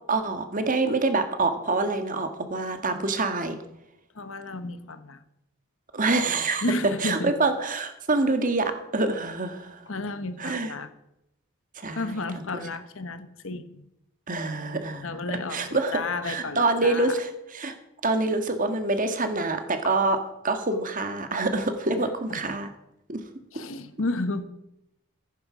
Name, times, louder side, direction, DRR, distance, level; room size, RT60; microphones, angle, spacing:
voice 1, 0.1-3.6 5.9-6.6 7.0-9.8 10.4-10.7 11.8-12.2 14.3-15.1 15.5-17.7 18.0-20.2 20.4-22.7 23.1-23.2, right 3 dB, 35° right, 7 dB, 1.6 m, -26 dB
voice 2, 4.1-5.2 6.6-7.3 9.9-10.9 12.0-13.8 15.0-17.2 21.9-22.6 23.5-24.5, left 2 dB, 65° left, 11 dB, 1.1 m, -32 dB
14.5 x 10.5 x 6.1 m, 0.85 s
head